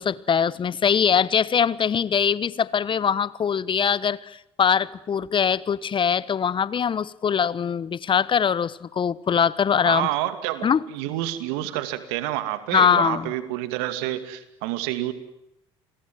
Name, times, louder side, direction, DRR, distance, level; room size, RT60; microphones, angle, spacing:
voice 1, 0.0-10.1 10.6-10.8 12.7-13.3, left 7 dB, 35° left, 20 dB, 1.1 m, -22 dB
voice 2, 9.7-15.1, right 14 dB, 75° right, 11 dB, 2.5 m, -28 dB
29.5 x 22.0 x 7.8 m, 0.82 s
hypercardioid pair, 60°, 14 cm